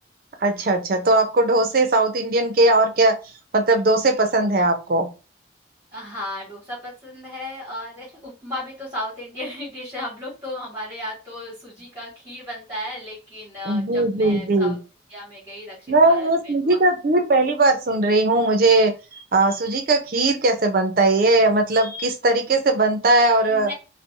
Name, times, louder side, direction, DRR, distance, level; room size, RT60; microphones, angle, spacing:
voice 1, 0.4-3.1 3.5-5.1 13.7-14.8 15.9-18.9 19.3-23.7, right 2 dB, 50° right, 5 dB, 0.5 m, -19 dB
voice 2, 5.9-14.8 15.1-16.8 23.5-23.7, left 1 dB, 15° right, -9 dB, 1.3 m, -35 dB
2.6 x 2.0 x 2.6 m, 0.31 s
head